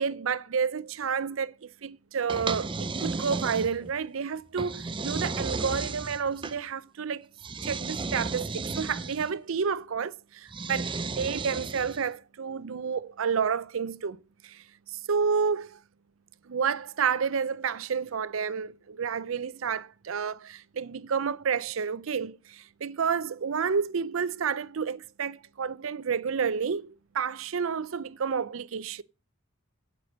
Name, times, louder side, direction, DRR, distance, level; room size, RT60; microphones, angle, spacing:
voice 1, 0.0-7.3 7.6-14.6 14.9-15.8 16.5-29.0, right 6 dB, 80° right, 0.5 m, -30 dB
sound 1, 2.3-4.0 4.6-6.6 7.4-9.3 10.5-12.1, right 3 dB, 25° right, 0.6 m, -34 dB
8.4 x 8.3 x 5.2 m
head